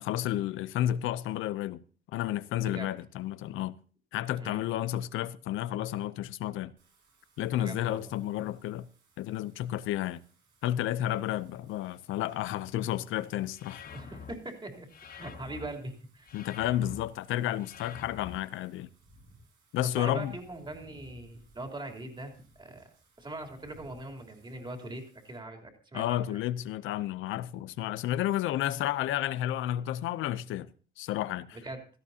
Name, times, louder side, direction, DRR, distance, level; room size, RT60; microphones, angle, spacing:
voice 1, 0.0-1.8 2.1-3.8 4.1-6.7 7.4-8.9 9.2-10.2 10.6-13.8 16.3-18.9 19.7-20.3 25.9-30.7 31.0-31.6, left 12 dB, 90° left, 0.6 m, -31 dB
Wind / Rain, 6.8-25.4, right 2 dB, 80° right, 7.9 m, -63 dB
voice 2, 7.6-8.1 11.0-11.2 13.9-16.3 19.8-22.9 23.2-26.4 31.5-31.8, right 2 dB, 25° right, 3.4 m, -42 dB
sound 1, 13.5-14.3 14.9-15.7 16.2-17.0 17.6-18.4, left 7 dB, 50° left, 1.0 m, -46 dB
16.5 x 13.5 x 2.8 m
cardioid pair, 90°, 20 cm